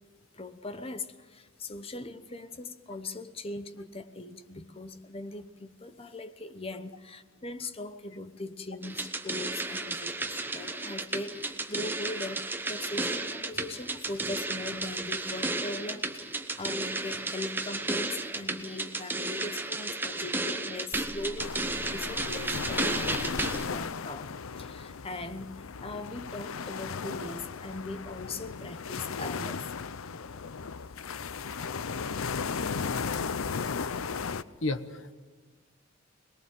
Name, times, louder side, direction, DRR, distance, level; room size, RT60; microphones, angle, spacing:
voice 1, 0.3-23.4 23.7-24.3 24.6-29.7, left 2 dB, 30° left, 10 dB, 1.0 m, -40 dB
sound 1, 8.8-23.6, right 2 dB, 10° right, 1.0 m, -33 dB
sound 2, 21.4-34.4, left 5 dB, 85° left, 0.6 m, -36 dB
voice 2, 34.6-35.1, left 2 dB, 65° left, 10 dB, 1.3 m, -32 dB
22.5 x 21.0 x 7.6 m, 1.3 s
head